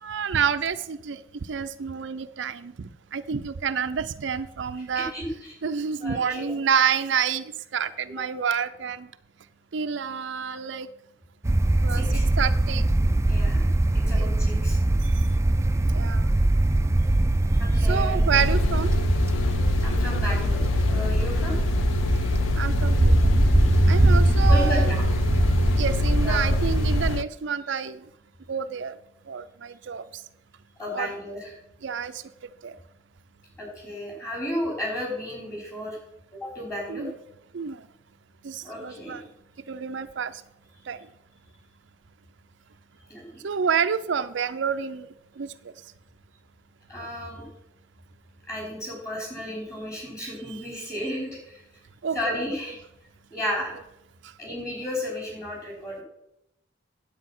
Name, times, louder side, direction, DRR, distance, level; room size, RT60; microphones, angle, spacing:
voice 1, 0.0-5.1 5.6-9.1 9.7-10.9 11.8-12.0 12.4-12.9 14.1-14.4 15.0-15.2 15.9-16.3 17.8-18.9 22.5-23.1 23.9-24.9 25.8-28.1 28.5-29.0 29.3-30.0 30.9-31.1 31.8-32.2 32.6-32.8 36.9-37.1 37.5-37.9 38.4-39.3 39.7-40.4 40.9-41.1 43.4-45.1 45.4-45.7 52.0-52.3 54.2-54.3, right 7 dB, 70° right, 10 dB, 0.5 m, -28 dB
voice 2, 4.9-5.3 6.0-6.6 8.1-8.2 11.9-12.2 13.3-13.7 13.9-14.8 17.6-18.2 19.8-21.6 24.5-25.1 26.2-26.5 30.8-31.5 33.6-36.0 36.3-37.1 38.6-39.2 43.1-43.2 46.9-47.4 48.5-51.6 52.1-52.8 53.3-53.7 54.4-56.0, equal, 15° left, -2 dB, 5.1 m, -33 dB
sound 1, 11.4-27.2, right 1 dB, 15° right, 0.4 m, -22 dB
sound 2, 18.3-27.2, left 7 dB, 90° left, 0.4 m, -29 dB
9.7 x 8.3 x 6.0 m, 0.81 s
head